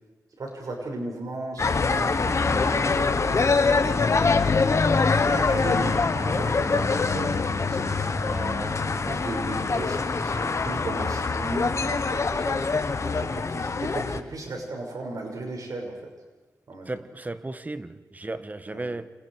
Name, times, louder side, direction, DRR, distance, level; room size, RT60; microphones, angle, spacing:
voice 1, 0.4-4.7 5.1-7.3 7.7-8.4 8.8-12.6 13.0-16.0 16.7-16.9 18.6-18.9, right 2 dB, 65° right, 5.8 m, -36 dB
sound 1, 1.6-14.2, left 4 dB, 50° left, 1.2 m, -24 dB
sound 2, 2.2-14.2, right 3 dB, 45° right, 3.4 m, -44 dB
voice 2, 8.2-8.9 16.9-19.1, right 2 dB, 25° right, 1.2 m, -35 dB
29.0 x 27.0 x 4.9 m
cardioid pair, 75°, 6 cm